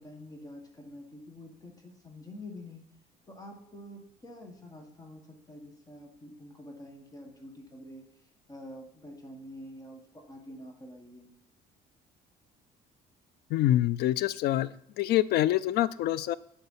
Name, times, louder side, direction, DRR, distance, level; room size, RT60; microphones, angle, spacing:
voice 1, 0.0-2.8 3.3-5.2 5.5-8.0 8.5-10.0 10.3-11.3, left 1 dB, 20° left, 2 dB, 1.6 m, -47 dB
voice 2, 13.5-16.3, left 14 dB, 70° left, 19 dB, 0.4 m, -26 dB
8.0 x 4.1 x 5.6 m, 0.77 s
cardioid pair, 110°, 17 cm